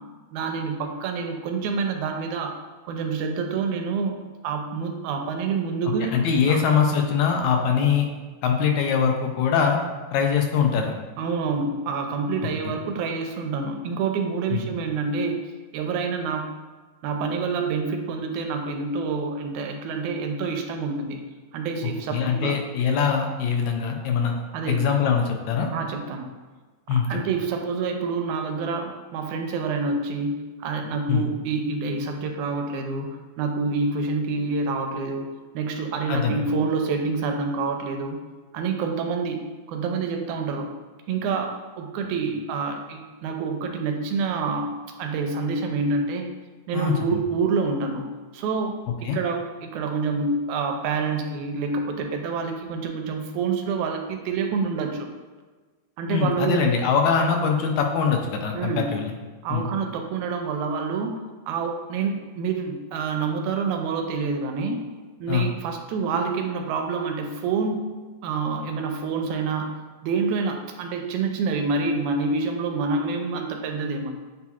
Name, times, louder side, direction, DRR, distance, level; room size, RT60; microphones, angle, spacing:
voice 1, 0.3-2.5 2.9-4.1 4.4-6.6 11.2-15.4 15.7-16.5 17.0-21.2 21.5-22.6 24.5-24.8 25.7-26.3 26.9-35.3 35.5-38.2 38.5-39.4 39.7-40.7 41.1-44.7 45.0-46.3 46.7-48.1 48.3-55.1 56.0-56.6 58.5-58.9 59.4-61.1 61.5-64.8 65.2-67.9 68.2-69.7 70.0-74.1, right 4 dB, 90° right, 4 dB, 2.0 m, -27 dB
voice 2, 6.0-8.1 8.4-9.8 10.1-10.9 12.6-12.7 14.5-14.6 21.8-24.3 24.7-25.7 26.9-27.2 31.1-31.3 36.1-36.4 46.7-47.2 49.0-49.2 56.1-59.1 59.5-59.7 65.3-65.5, left 6 dB, 80° left, 2 dB, 1.8 m, -23 dB
8.1 x 2.8 x 2.3 m, 1.3 s
omnidirectional pair, 3.4 m